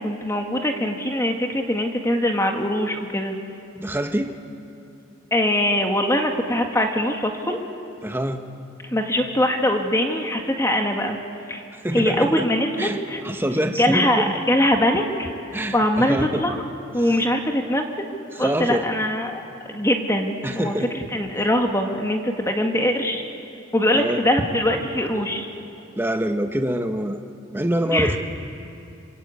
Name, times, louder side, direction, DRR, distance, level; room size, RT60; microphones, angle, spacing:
voice 1, 0.0-3.3 5.3-7.6 8.8-11.2 11.5-11.6 11.9-13.2 13.8-16.6 16.9-18.1 18.4-19.4 19.7-23.2 23.7-25.5 27.9-28.2, left 1 dB, 15° left, 3 dB, 1.8 m, -22 dB
voice 2, 3.8-4.3 8.0-8.4 11.7-12.4 12.8-14.2 15.5-16.4 18.3-18.9 20.4-20.9 23.9-24.2 26.0-27.2 27.5-28.2, right 1 dB, 10° right, 5 dB, 1.3 m, -25 dB
27.0 x 25.5 x 8.5 m, 2.7 s
head